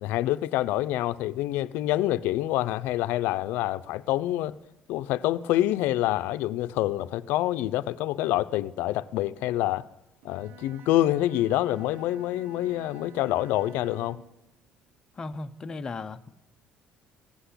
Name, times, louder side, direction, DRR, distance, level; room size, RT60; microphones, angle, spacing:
voice 1, 0.0-4.5 4.9-9.8 10.2-14.2, left 14 dB, 80° left, 0.5 m, -26 dB
Bowed string instrument, 10.2-14.4, right 7 dB, 60° right, 0.7 m, -51 dB
voice 2, 15.1-16.3, left 3 dB, 20° left, 0.6 m, -36 dB
16.0 x 8.1 x 8.3 m
cardioid pair, 160°, 3 cm